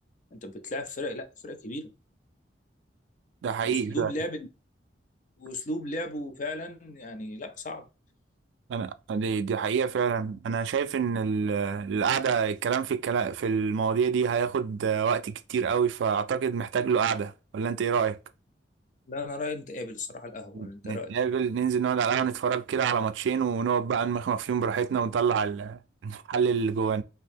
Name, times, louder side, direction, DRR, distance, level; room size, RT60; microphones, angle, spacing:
voice 1, 0.3-1.9 3.6-4.5 5.4-7.9 19.1-21.2, left 1 dB, 45° left, 0.5 m, -35 dB
voice 2, 3.4-4.1 8.7-18.2 20.5-27.0, right 6 dB, 85° right, 0.3 m, -27 dB
2.9 x 2.6 x 3.4 m
head